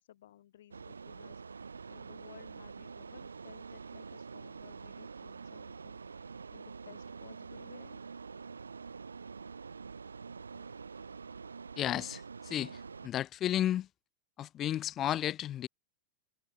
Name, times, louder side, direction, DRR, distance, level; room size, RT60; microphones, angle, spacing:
voice 1, 0.0-8.0, left 12 dB, 60° left, 7.6 m, -58 dB
sound 1, 0.7-13.1, right 5 dB, 75° right, 3.9 m, -46 dB
voice 2, 11.8-12.8 13.0-13.9 14.4-15.7, left 12 dB, 30° left, 0.5 m, -33 dB
figure-of-eight pair, 90°, 0 cm